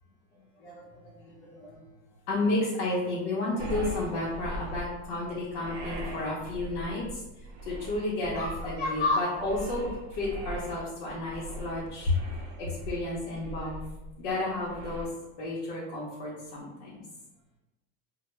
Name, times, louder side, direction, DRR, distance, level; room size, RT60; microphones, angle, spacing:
voice 1, 0.6-1.8 2.3-7.2 7.6-13.8 14.2-15.1 15.4-17.0, left 2 dB, 80° left, -6 dB, 0.8 m, -31 dB
sound 1, 3.6-15.1, equal, 55° right, 0.6 m, -40 dB
2.2 x 2.1 x 3.0 m, 1.0 s
supercardioid pair, 150°, 34 cm